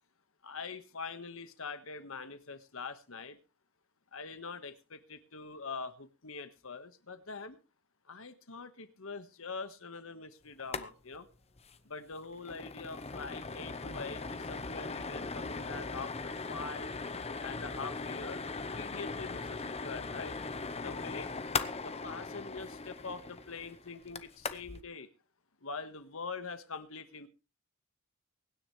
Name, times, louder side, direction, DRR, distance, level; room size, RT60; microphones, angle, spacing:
voice 1, 0.4-3.4 4.1-7.6 8.1-11.3 11.8-17.0 17.4-20.4 20.8-21.3 21.8-25.1 25.6-27.3, left 4 dB, 65° left, 1.5 m, -44 dB
sound 1, 10.6-10.9 11.1-11.2 11.6-11.8 12.1-24.8, left 4 dB, 30° left, 0.9 m, -39 dB
24.0 x 10.0 x 3.2 m
head